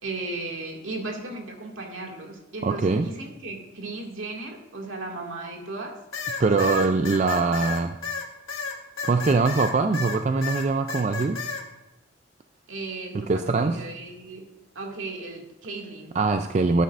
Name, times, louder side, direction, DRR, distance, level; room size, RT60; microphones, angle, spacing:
voice 1, 0.0-5.9 6.6-6.8 12.7-13.3 13.6-14.4 14.8-16.2, right 2 dB, 75° right, 1 dB, 2.1 m, -35 dB
voice 2, 2.6-3.1 6.4-8.0 9.0-11.4 13.1-13.8 16.1-16.8, right 3 dB, 35° right, 8 dB, 0.3 m, -22 dB
sound 1, 6.1-10.2 10.4-11.6, left 5 dB, 85° left, 1.6 m, -32 dB
13.5 x 9.3 x 2.5 m, 1.0 s
head